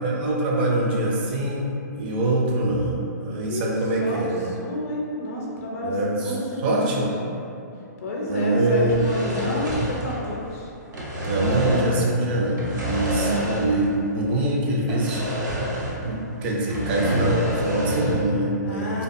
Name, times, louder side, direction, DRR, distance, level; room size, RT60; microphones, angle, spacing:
voice 1, 0.0-4.5 5.8-6.4 6.6-7.1 8.3-9.0 9.3-9.6 11.2-15.4 16.0-19.0, right 1 dB, 35° right, -2 dB, 0.4 m, -24 dB
voice 2, 4.0-7.4 8.0-10.7 18.6-19.0, left 1 dB, 50° left, -3 dB, 0.5 m, -31 dB
sound 1, 8.8-10.5 10.8-12.0 12.5-13.9 14.2-14.3 14.9-16.1 16.4-18.3, right 1 dB, 75° right, 0.7 m, -28 dB
2.4 x 2.3 x 2.5 m, 2.7 s
hypercardioid pair, 150°, 10 cm